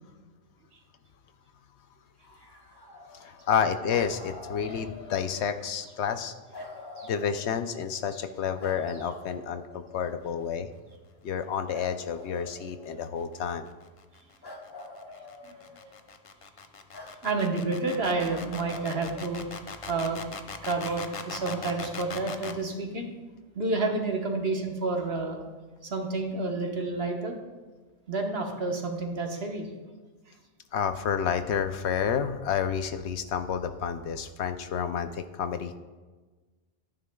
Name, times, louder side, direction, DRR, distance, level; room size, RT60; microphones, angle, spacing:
sound 1, 2.2-3.6 3.9-5.6 6.5-8.0 8.6-10.2 11.7-13.4 14.4-16.1 16.9-17.1 18.2-19.9 20.8-22.0, left 2 dB, 20° left, 1.2 m, -45 dB
voice 1, 3.1-6.3 7.1-10.7 11.2-13.7 30.7-35.8, left 7 dB, 70° left, 9 dB, 0.8 m, -30 dB
sound 2, 13.4-22.6, left 5 dB, 40° left, 0.5 m, -40 dB
voice 2, 17.2-19.4 19.9-20.2 20.6-23.1 23.5-25.4 25.8-27.4 28.1-29.7, right 3 dB, 55° right, 2 dB, 1.4 m, -29 dB
14.5 x 9.5 x 2.3 m, 1.3 s
omnidirectional pair, 1.2 m